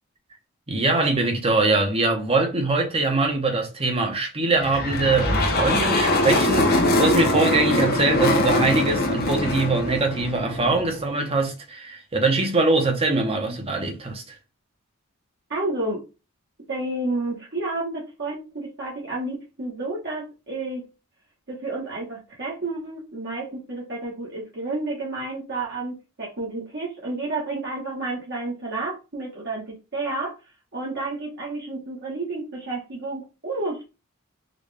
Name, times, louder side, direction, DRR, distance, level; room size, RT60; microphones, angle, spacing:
voice 1, 0.7-14.4, right 3 dB, 25° right, 0.8 m, -23 dB
sound 1, 4.6-11.0, left 1 dB, 45° left, 0.7 m, -22 dB
voice 2, 15.5-16.0 16.7-20.8 21.5-30.3 30.7-33.9, right 2 dB, 50° right, 1.1 m, -30 dB
4.0 x 2.3 x 3.3 m
head